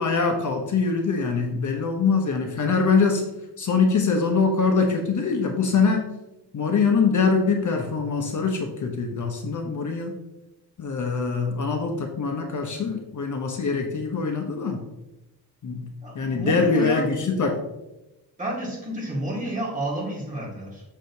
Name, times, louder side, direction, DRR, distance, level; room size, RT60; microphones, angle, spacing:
voice 1, 0.0-3.3 3.6-6.0 6.5-10.1 10.8-14.8 15.6-15.9 16.1-17.6, left 4 dB, 45° left, 3 dB, 0.8 m, -23 dB
voice 2, 16.0-17.0 18.4-20.8, right 1 dB, 20° right, -4 dB, 1.8 m, -30 dB
6.3 x 6.3 x 2.7 m, 0.97 s
wide cardioid pair, 130°, 41 cm